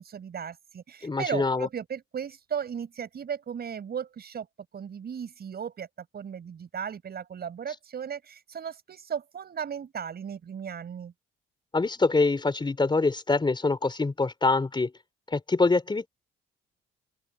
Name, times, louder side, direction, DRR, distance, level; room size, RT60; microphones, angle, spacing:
voice 1, 0.0-4.5 4.7-5.9 6.1-11.1, right 7 dB, 50° right, 6.3 m, -36 dB
voice 2, 1.0-1.7 11.7-14.9 15.3-16.1, left 3 dB, 25° left, 4.0 m, -25 dB
open air
cardioid pair, 90°, 20 cm